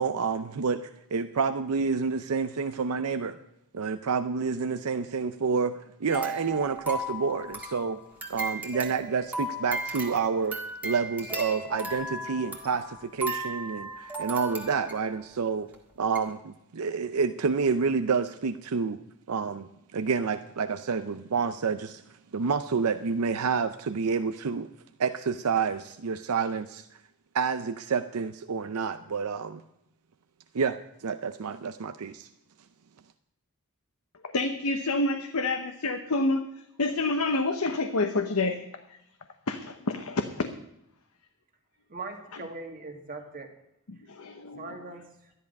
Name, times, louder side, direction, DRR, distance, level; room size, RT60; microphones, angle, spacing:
voice 1, 0.0-3.4 3.7-8.0 8.3-10.6 10.8-15.7 16.0-19.0 19.3-22.0 22.3-24.7 25.0-26.9 27.3-29.6 30.5-32.3, right 5 dB, 85° right, 9 dB, 0.6 m, -29 dB
sound 1, 6.1-15.3 15.7-15.8 16.2-16.3, right 1 dB, 10° right, 1.7 m, -36 dB
voice 2, 34.3-36.5 36.8-38.6 39.5-40.5 43.9-44.8, left 2 dB, 85° left, 6 dB, 0.9 m, -28 dB
voice 3, 41.9-43.5 44.6-45.3, right 3 dB, 40° right, 3 dB, 2.0 m, -40 dB
13.0 x 11.0 x 5.3 m, 0.81 s
head